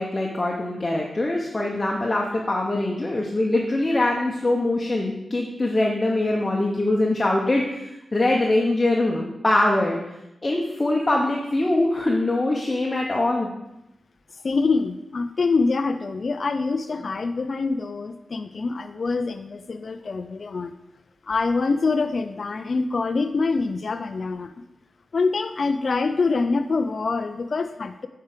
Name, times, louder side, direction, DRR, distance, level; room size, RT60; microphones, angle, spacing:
voice 1, 0.0-10.0 10.4-13.5, left 2 dB, 25° left, -1 dB, 0.9 m, -23 dB
voice 2, 14.3-20.7 21.2-24.5 25.1-28.1, left 4 dB, 50° left, 8 dB, 0.4 m, -25 dB
8.1 x 4.6 x 6.6 m, 0.91 s
wide cardioid pair, 135°, 0 cm